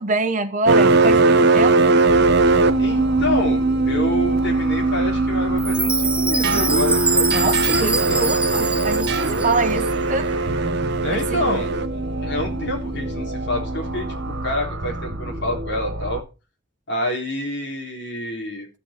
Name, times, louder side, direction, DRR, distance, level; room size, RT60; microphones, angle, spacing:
voice 1, 0.0-2.0 7.3-10.4 11.1-11.6, right 3 dB, 40° right, 1.2 m, -25 dB
sound 1, 0.7-14.5, right 3 dB, 55° right, 0.8 m, -20 dB
sound 2, 2.1-16.2, right 1 dB, 80° right, 1.7 m, -30 dB
voice 2, 2.8-7.4 7.8-8.3 11.0-11.7 12.2-16.2 16.9-18.7, left 1 dB, 60° left, 3.7 m, -27 dB
Chime, 5.6-9.8, right 3 dB, 5° right, 0.5 m, -24 dB
14.0 x 7.5 x 4.3 m
head